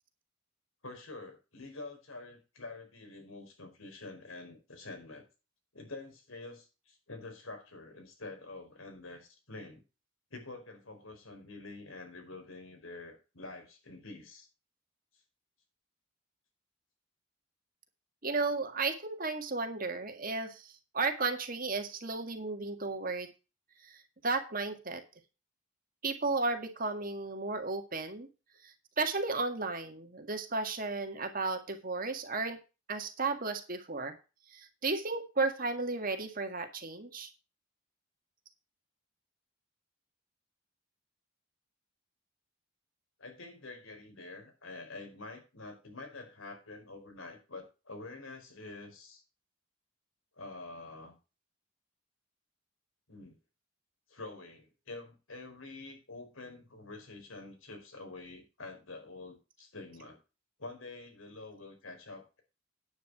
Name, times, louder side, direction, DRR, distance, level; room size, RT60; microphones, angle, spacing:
voice 1, 0.8-5.3 5.7-9.8 10.3-14.5 43.2-49.2 50.4-51.2 53.1-53.4 54.1-60.2 60.6-62.4, left 3 dB, 80° left, 4 dB, 4.8 m, -47 dB
voice 2, 18.2-23.3 23.9-25.0 26.0-28.3 28.6-32.6 32.9-34.2 34.5-37.3, right 3 dB, 40° right, 6 dB, 1.9 m, -34 dB
9.6 x 9.6 x 4.8 m, 0.31 s
head